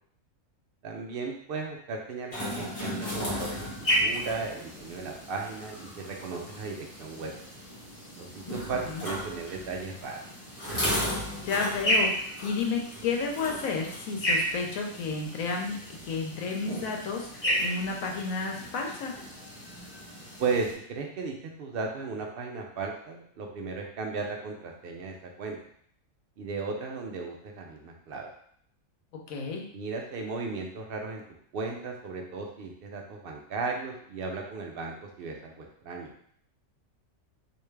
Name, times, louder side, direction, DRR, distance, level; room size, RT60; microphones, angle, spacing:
voice 1, 0.8-7.3 8.2-10.2 20.4-25.6 26.4-28.3 29.7-31.2 31.5-36.1, right 4 dB, 60° right, 1 dB, 0.6 m, -35 dB
sound 1, 2.3-20.7, equal, 30° left, 1.0 m, -33 dB
voice 2, 11.4-12.1 12.4-19.2 29.3-29.6, left 4 dB, 90° left, 1 dB, 1.1 m, -31 dB
3.3 x 2.7 x 3.2 m, 0.65 s
omnidirectional pair, 1.4 m